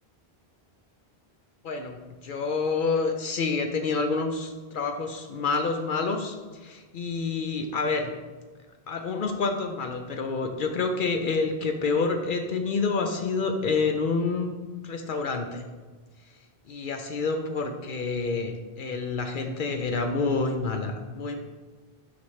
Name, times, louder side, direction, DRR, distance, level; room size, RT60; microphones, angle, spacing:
voice 1, 1.6-2.0 2.2-8.1 8.9-14.5 14.8-15.6 16.7-21.4, left 4 dB, 60° left, 5 dB, 0.7 m, -28 dB
5.9 x 5.9 x 3.1 m, 1.3 s
omnidirectional pair, 1.0 m